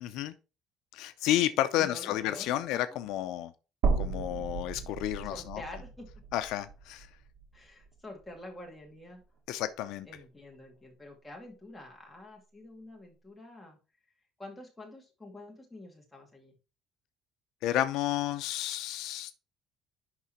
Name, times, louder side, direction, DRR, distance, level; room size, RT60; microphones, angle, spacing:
voice 1, 0.0-0.3 0.9-3.5 4.0-5.6 6.3-7.1 9.5-10.1 17.6-19.3, left 13 dB, 75° left, 0.6 m, -31 dB
voice 2, 1.7-3.0 5.3-6.1 7.5-9.2 10.1-13.8 14.4-16.5, left 1 dB, 5° left, 2.4 m, -47 dB
sound 1, 3.8-8.0 8.4-8.5 9.9-10.0, right 4 dB, 75° right, 2.0 m, -34 dB
11.0 x 3.7 x 4.3 m
cardioid pair, 170°, 0 cm